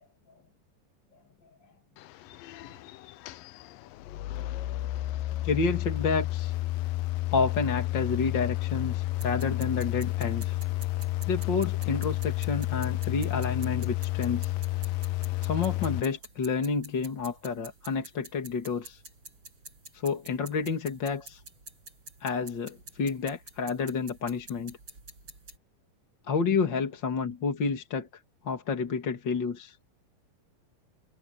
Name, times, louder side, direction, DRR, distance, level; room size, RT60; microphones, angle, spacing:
sound 1, 2.0-16.0, left 16 dB, 90° left, 2.5 m, -31 dB
voice 1, 5.4-6.5 7.3-10.6 11.3-14.5 15.4-19.0 19.9-21.4 22.2-24.8 26.3-28.1 28.4-29.8, left 5 dB, 40° left, 2.3 m, -30 dB
sound 2, 9.1-25.6, right 3 dB, 35° right, 6.6 m, -49 dB
omnidirectional pair, 4.0 m